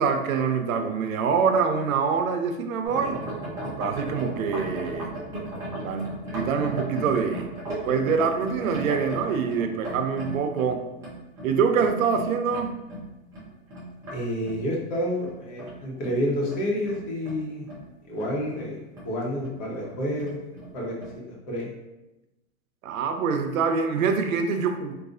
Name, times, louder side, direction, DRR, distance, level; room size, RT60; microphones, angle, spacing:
voice 1, 0.0-3.2 3.8-5.1 5.8-7.5 7.8-10.9 11.4-12.8 22.8-24.9, right 6 dB, 80° right, 6 dB, 0.6 m, -25 dB
sound 1, 2.8-14.2 14.4-17.9 18.2-18.7 18.9-19.1 19.4-19.5 19.8-20.7 21.0-21.2, right 2 dB, 10° right, 0.3 m, -36 dB
voice 2, 14.1-17.7 18.1-18.8 19.0-20.4 20.7-21.7, equal, 45° left, -3 dB, 1.1 m, -29 dB
3.9 x 2.4 x 2.5 m, 0.99 s
hypercardioid pair, 135°, 41 cm